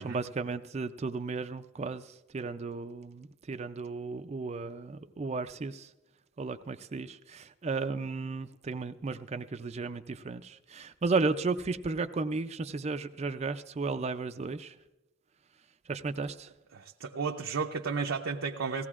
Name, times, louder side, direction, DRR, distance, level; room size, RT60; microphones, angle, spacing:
voice 1, 0.0-5.9 6.4-14.8 15.9-16.5, right 4 dB, 30° right, 9 dB, 0.4 m, -34 dB
voice 2, 16.7-18.8, right 5 dB, 75° right, 0 dB, 0.6 m, -33 dB
19.0 x 16.5 x 2.4 m, 1.0 s
head